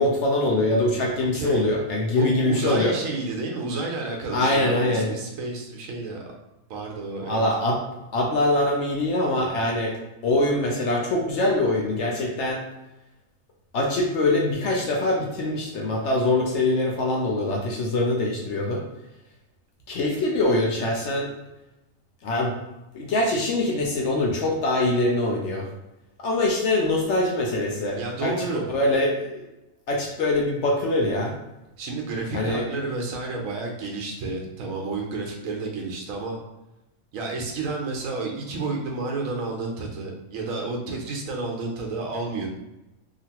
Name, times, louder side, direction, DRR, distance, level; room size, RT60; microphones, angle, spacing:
voice 1, 0.0-2.9 4.3-5.1 7.2-7.8 8.1-10.0 10.2-12.6 13.7-18.8 19.9-21.3 22.2-22.6 22.9-25.7 26.2-29.4 29.9-31.3 32.3-32.7, left 2 dB, 65° left, -1 dB, 0.8 m, -23 dB
voice 2, 1.3-1.7 2.2-6.2 6.7-7.5 27.9-28.6 31.8-36.4 37.1-42.5, right 3 dB, 75° right, 1 dB, 1.0 m, -30 dB
2.9 x 2.5 x 2.8 m, 0.96 s
omnidirectional pair, 1.5 m